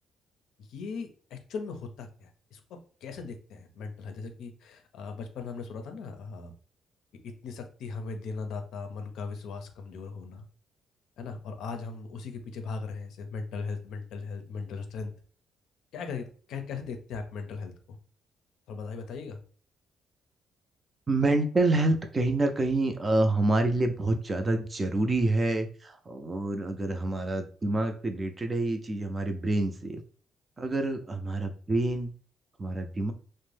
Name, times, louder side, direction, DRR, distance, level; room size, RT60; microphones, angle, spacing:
voice 1, 0.6-6.5 7.2-10.5 11.2-15.1 15.9-18.0 18.7-19.4, left 4 dB, 80° left, 6 dB, 0.5 m, -38 dB
voice 2, 21.1-30.0 30.6-32.1 32.6-33.1, right 2 dB, 30° right, 7 dB, 0.4 m, -27 dB
2.5 x 2.0 x 3.2 m, 0.42 s
cardioid pair, 90°, 0 cm